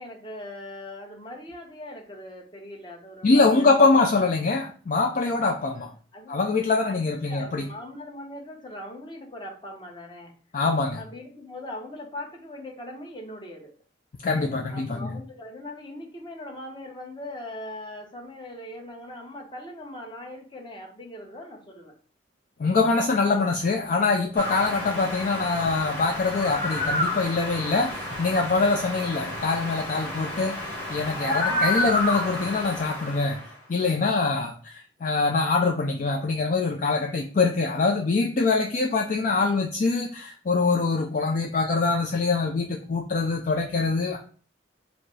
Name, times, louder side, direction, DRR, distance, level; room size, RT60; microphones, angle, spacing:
voice 1, 0.0-4.0 5.8-10.3 10.9-13.7 14.7-21.9 31.3-32.0, left 1 dB, 25° left, 0 dB, 0.9 m, -41 dB
voice 2, 3.2-5.9 6.3-7.7 10.5-11.0 14.2-15.1 22.6-33.4 33.7-44.2, left 3 dB, 45° left, 2 dB, 0.4 m, -24 dB
sound 1, 24.4-33.5, left 1 dB, 10° left, 1.2 m, -30 dB
4.9 x 2.0 x 4.7 m, 0.42 s
head